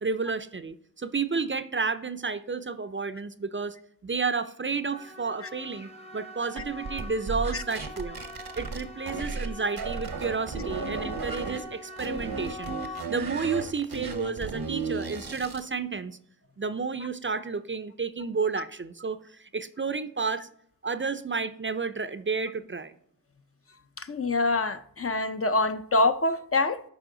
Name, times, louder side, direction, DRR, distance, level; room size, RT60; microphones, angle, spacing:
voice 1, 0.0-3.8 4.0-8.2 8.6-16.2 16.6-20.5 20.8-22.9, right 4 dB, 35° right, 0.4 m, -31 dB
sound 1, 4.9-13.0, left 1 dB, 15° left, 0.8 m, -43 dB
sound 2, 6.6-9.5 9.8-11.6 12.0-15.7, right 4 dB, 85° right, 0.9 m, -34 dB
voice 2, 24.0-26.8, left 2 dB, 40° left, 0.5 m, -25 dB
11.0 x 4.3 x 3.8 m
wide cardioid pair, 60°, 36 cm